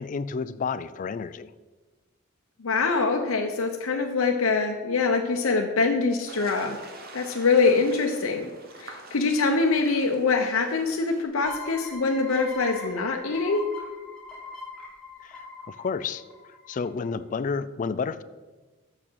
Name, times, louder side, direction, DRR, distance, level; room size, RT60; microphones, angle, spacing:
voice 1, 0.0-1.5 15.2-16.2 16.7-18.2, left 5 dB, 40° left, 15 dB, 0.3 m, -31 dB
voice 2, 2.6-6.8 7.1-8.5 8.8-13.6, left 4 dB, 85° left, 2 dB, 0.7 m, -24 dB
sound 1, 6.3-11.3, right 2 dB, 45° right, 1.1 m, -46 dB
sound 2, 11.4-16.8, left 4 dB, 5° left, 2.0 m, -41 dB
6.7 x 6.0 x 6.1 m, 1.2 s
head